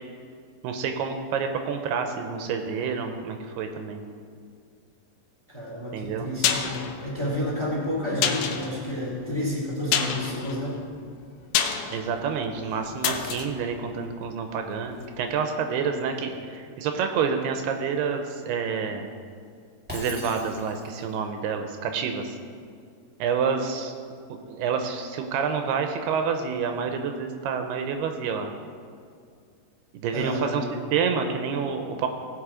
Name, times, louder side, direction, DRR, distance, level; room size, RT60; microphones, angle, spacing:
voice 1, 0.6-4.0 5.9-6.3 11.9-19.1 19.9-22.4 23.2-23.9 24.5-28.5 29.9-30.6 30.9-32.1, right 6 dB, 80° right, 5 dB, 2.7 m, -28 dB
voice 2, 5.5-10.8 15.9-16.5 30.1-30.9, left 1 dB, 10° left, -4 dB, 2.1 m, -31 dB
sound 1, 6.0-14.9 15.2-15.3, left 8 dB, 75° left, 2.3 m, -30 dB
Shatter, 19.9-21.1, left 1 dB, 10° right, 0.4 m, -39 dB
17.5 x 6.1 x 5.0 m, 2.2 s
omnidirectional pair, 4.7 m